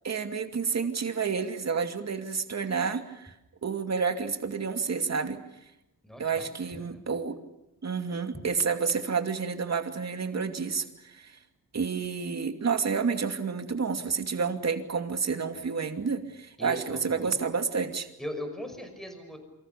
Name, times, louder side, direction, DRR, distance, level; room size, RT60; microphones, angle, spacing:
voice 1, 0.0-3.3 3.6-5.4 6.2-7.4 7.8-11.4 11.7-18.1, right 5 dB, 45° right, 7 dB, 2.6 m, -30 dB
voice 2, 6.0-6.5 6.7-7.1 8.3-8.4 16.6-17.4 18.2-19.4, equal, ahead, 6 dB, 5.8 m, -39 dB
28.0 x 25.5 x 6.8 m, 0.87 s
wide cardioid pair, 155°, 38 cm